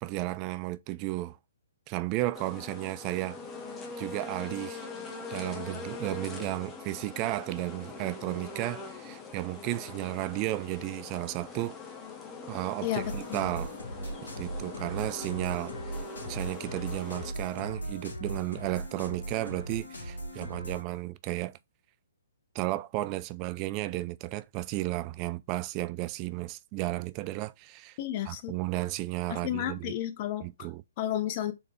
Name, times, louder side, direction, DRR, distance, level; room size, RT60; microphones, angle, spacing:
voice 1, 0.0-1.4 1.9-3.4 4.0-4.8 5.3-11.8 12.5-13.7 14.4-21.6 22.5-28.0 28.3-29.9 30.4-30.8, right 18 dB, 30° right, 0.3 m, -33 dB
sound 1, 2.3-17.3, left 4 dB, 15° left, 1.0 m, -42 dB
voice 2, 12.8-13.4 28.0-28.5 29.3-30.5 31.0-31.5, left 12 dB, 40° left, 0.8 m, -32 dB
sound 2, 13.0-20.8, right 1 dB, 85° left, 2.0 m, -39 dB
4.1 x 3.3 x 3.6 m
hypercardioid pair, 140°, 0 cm